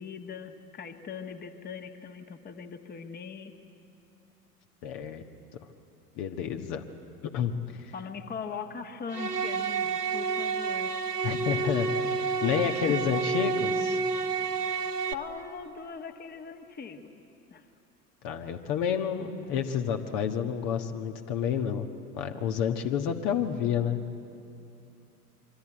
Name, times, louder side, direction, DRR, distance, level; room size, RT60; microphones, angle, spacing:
voice 1, 0.0-3.5 7.9-10.9 12.9-13.0 14.4-14.6 15.1-17.1 17.5-17.7, left 6 dB, 20° left, 7 dB, 1.6 m, -40 dB
voice 2, 4.8-5.2 6.1-6.8 7.2-7.9 11.2-14.0 18.2-21.9 22.1-24.0, left 8 dB, 45° left, 5 dB, 1.5 m, -30 dB
sound 1, 9.1-15.1, right 5 dB, 85° right, 1.2 m, -29 dB
26.5 x 24.0 x 9.0 m, 2.8 s
figure-of-eight pair, 75°, 46 cm